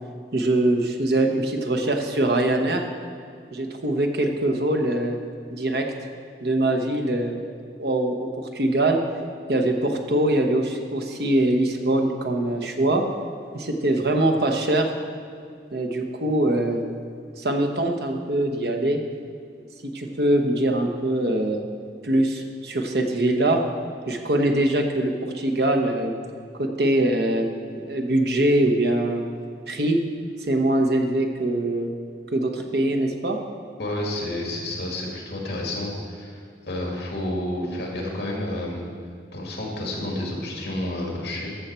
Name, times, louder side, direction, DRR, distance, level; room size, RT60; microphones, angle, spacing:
voice 1, 0.3-2.8 3.5-5.2 5.5-5.9 6.4-7.5 7.8-9.0 9.5-13.0 13.5-14.9 15.7-16.8 17.4-19.0 19.8-21.6 22.0-23.6 24.1-26.1 26.6-27.4 27.8-29.3 29.7-30.0 30.4-31.9 32.3-33.4, right 1 dB, 70° right, 3 dB, 1.0 m, -23 dB
voice 2, 33.8-38.8 39.3-41.5, left 1 dB, 75° left, -1 dB, 2.0 m, -30 dB
13.5 x 6.4 x 4.4 m, 2.1 s
head